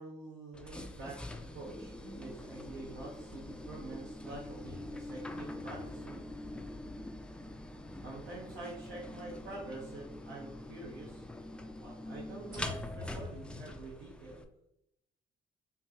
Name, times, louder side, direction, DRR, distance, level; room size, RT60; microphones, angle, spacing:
voice 1, 0.0-6.2 8.0-11.3 11.8-14.4, right 2 dB, 90° right, -5 dB, 1.0 m, -47 dB
sound 1, 0.5-14.4, left 1 dB, 5° left, 0.3 m, -45 dB
sound 2, 4.6-8.9 9.5-9.6 12.5-13.6, left 2 dB, 45° right, 1.4 m, -49 dB
4.4 x 2.6 x 2.8 m, 0.80 s
cardioid pair, 90°, 20 cm